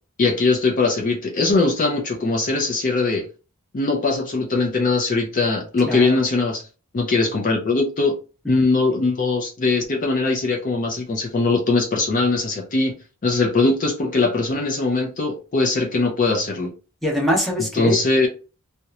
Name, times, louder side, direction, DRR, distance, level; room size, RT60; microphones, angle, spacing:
voice 1, 0.2-3.3 3.7-6.6 6.9-8.2 8.5-12.9 13.2-16.7 17.8-18.3, left 3 dB, 40° left, 0.5 m, -21 dB
voice 2, 5.8-6.2 17.0-18.3, left 1 dB, ahead, 0.8 m, -23 dB
2.9 x 2.1 x 2.3 m
head